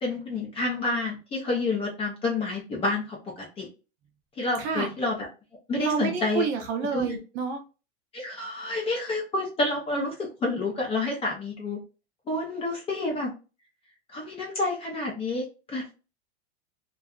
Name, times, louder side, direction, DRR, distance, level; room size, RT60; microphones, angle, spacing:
voice 1, 0.0-3.7 4.4-5.1 5.7-6.4 6.9-7.1 8.1-11.8 12.3-13.3 14.1-15.9, left 2 dB, 15° left, -1 dB, 0.5 m, -29 dB
voice 2, 4.6-4.9 5.8-7.6, right 6 dB, 35° right, 3 dB, 0.6 m, -29 dB
2.7 x 2.3 x 2.3 m, 0.32 s
supercardioid pair, 155°, 34 cm